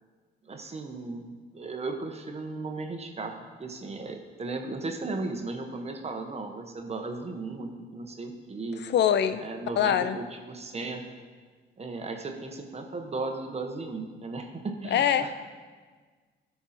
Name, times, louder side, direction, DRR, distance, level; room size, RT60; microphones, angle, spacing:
voice 1, 0.4-1.3 1.5-3.3 3.6-8.8 9.4-11.0 11.8-15.3, right 3 dB, 30° right, 4 dB, 1.1 m, -36 dB
voice 2, 8.8-9.4 9.8-10.2 14.9-15.3, left 9 dB, 60° left, 12 dB, 0.5 m, -23 dB
13.0 x 4.7 x 4.3 m, 1.5 s
cardioid pair, 90°, 20 cm